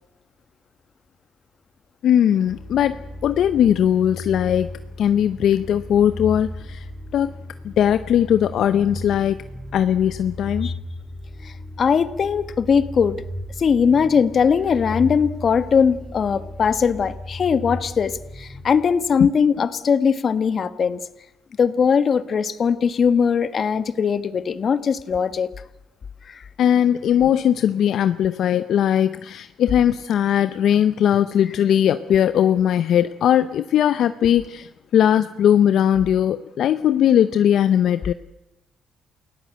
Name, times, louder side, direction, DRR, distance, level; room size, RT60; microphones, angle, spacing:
voice 1, 2.0-4.7 5.0-6.8 7.1-7.3 7.6-9.4 9.7-10.7 26.6-38.1, left 10 dB, 70° left, 12 dB, 0.8 m, -19 dB
sound 1, 2.5-19.3, left 1 dB, 10° left, 5.0 m, -36 dB
voice 2, 11.8-13.2 13.6-21.0 21.6-25.5 26.3-26.4, left 6 dB, 50° left, 13 dB, 1.5 m, -20 dB
29.0 x 17.0 x 7.9 m, 0.91 s
cardioid pair, 85°, 0 cm